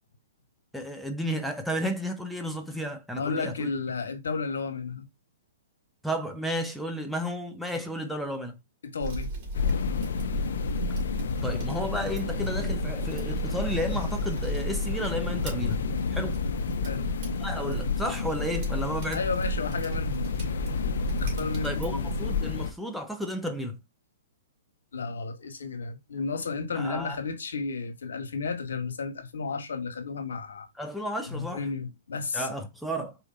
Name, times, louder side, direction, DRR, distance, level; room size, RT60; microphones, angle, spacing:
voice 1, 0.7-3.7 6.0-8.6 11.4-15.8 16.1-16.4 17.4-19.2 21.6-23.8 26.7-27.2 30.8-31.6 32.3-33.2, equal, ahead, 0.6 m, -32 dB
voice 2, 3.2-5.1 8.8-9.3 16.8-17.1 19.1-20.3 21.2-22.0 24.9-30.7 31.3-32.5, left 4 dB, 85° left, 1.4 m, -32 dB
sound 1, 9.0-22.4, right 3 dB, 35° right, 2.5 m, -35 dB
sound 2, 9.5-22.7, left 5 dB, 70° left, 0.7 m, -31 dB
4.8 x 2.9 x 3.8 m
hypercardioid pair, 145°, 0 cm